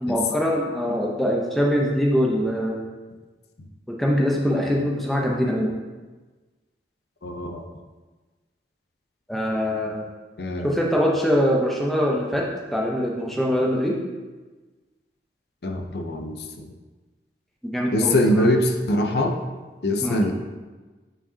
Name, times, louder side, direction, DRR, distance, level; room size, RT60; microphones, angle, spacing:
voice 1, 0.0-2.8 3.9-5.7 9.3-10.1 10.6-14.0 17.6-18.4 20.0-20.2, equal, ahead, -2 dB, 0.7 m, -23 dB
voice 2, 7.2-7.7 10.4-10.8 15.6-16.7 17.9-19.3 19.8-20.3, left 1 dB, 70° left, 4 dB, 0.6 m, -23 dB
8.7 x 4.7 x 2.8 m, 1.3 s
head